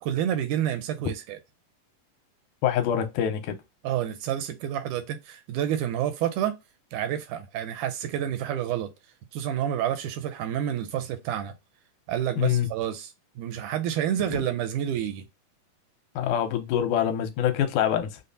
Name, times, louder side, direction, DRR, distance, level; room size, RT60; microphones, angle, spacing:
voice 1, 0.0-1.4 3.8-6.6 6.9-8.9 9.3-11.5 12.1-15.2, right 10 dB, 80° right, 1.8 m, -29 dB
voice 2, 2.6-3.6 12.4-12.7 14.3-14.4 16.2-18.2, left 9 dB, 80° left, 2.0 m, -25 dB
5.3 x 2.0 x 2.5 m
omnidirectional pair, 3.8 m